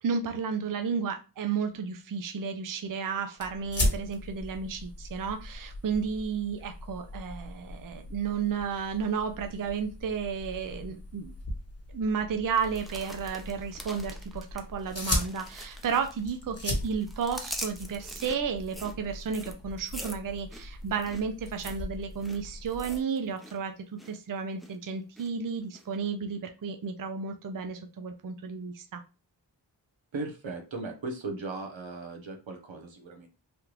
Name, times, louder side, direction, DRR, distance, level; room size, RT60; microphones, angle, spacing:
voice 1, 0.0-11.3 11.9-29.0, right 6 dB, 50° right, 6 dB, 0.5 m, -32 dB
sound 1, 3.4-23.0, left 1 dB, 30° left, 1.1 m, -38 dB
sound 2, 12.5-16.3 16.6-23.6 23.8-24.2 24.6-25.3 25.7-25.8, equal, ahead, 0.6 m, -44 dB
voice 2, 30.1-33.3, right 3 dB, 85° right, 3 dB, 0.9 m, -37 dB
3.4 x 2.4 x 3.0 m, 0.31 s
wide cardioid pair, 50°, 45 cm